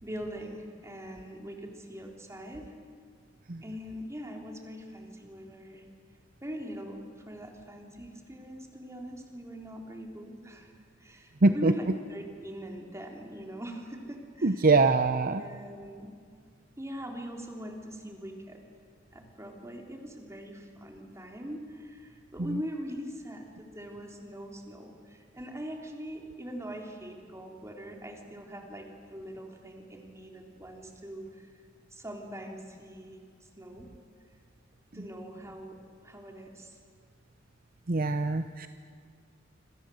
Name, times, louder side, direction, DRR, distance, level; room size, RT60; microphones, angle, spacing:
voice 1, 0.0-2.7 3.6-5.8 6.4-10.7 11.0-14.7 15.3-16.1 16.8-18.6 19.1-31.5 31.9-33.2 33.6-33.9 34.9-35.8 36.0-36.8, equal, 15° right, 2 dB, 3.7 m, -42 dB
voice 2, 11.4-11.7 14.4-15.4 37.9-38.7, right 3 dB, 50° right, 9 dB, 0.8 m, -23 dB
27.0 x 26.0 x 7.9 m, 2.1 s
head